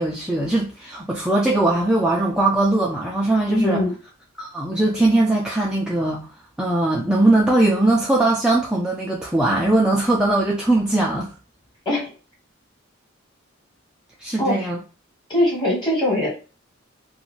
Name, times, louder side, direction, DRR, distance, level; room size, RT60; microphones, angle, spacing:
voice 1, 0.0-3.8 4.4-6.3 6.6-11.3 14.2-14.8, right 2 dB, 5° right, -3 dB, 0.3 m, -20 dB
voice 2, 3.5-3.9 11.8-12.1 14.4-14.7 15.3-16.3, left 1 dB, 20° left, -3 dB, 1.2 m, -21 dB
2.4 x 2.3 x 3.0 m, 0.35 s
head